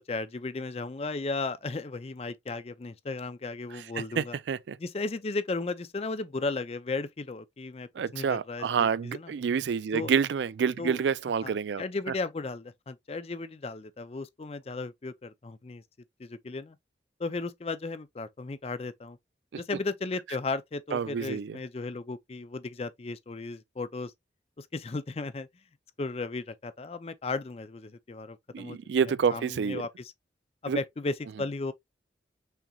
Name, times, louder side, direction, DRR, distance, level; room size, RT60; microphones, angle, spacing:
voice 1, 0.0-4.4 4.8-9.3 9.9-10.1 10.8-11.0 11.4-11.5 11.8-15.8 16.2-16.8 17.2-19.2 19.6-24.1 24.6-25.5 26.0-28.8 29.3-30.1 30.6-31.7, left 3 dB, 35° left, 0.4 m, -35 dB
voice 2, 4.2-4.8 8.0-11.8 19.5-19.6 20.9-21.6 28.5-29.8 30.7-30.8, right 6 dB, 75° right, 0.3 m, -28 dB
5.7 x 3.9 x 2.3 m
head